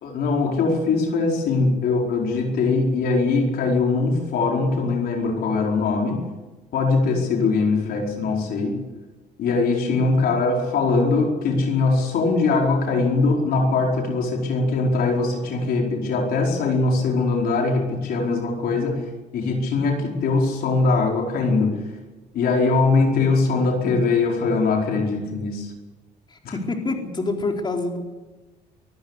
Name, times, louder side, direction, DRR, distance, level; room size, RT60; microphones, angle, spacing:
voice 1, 0.0-6.2 6.7-8.8 9.4-19.0 19.3-21.8 22.3-25.7 26.4-26.5, left 3 dB, 65° left, 0 dB, 4.8 m, -21 dB
voice 2, 26.3-28.0, left 3 dB, 25° left, 2 dB, 4.2 m, -27 dB
24.5 x 14.5 x 8.2 m, 1.2 s
cardioid pair, 110°, 17 cm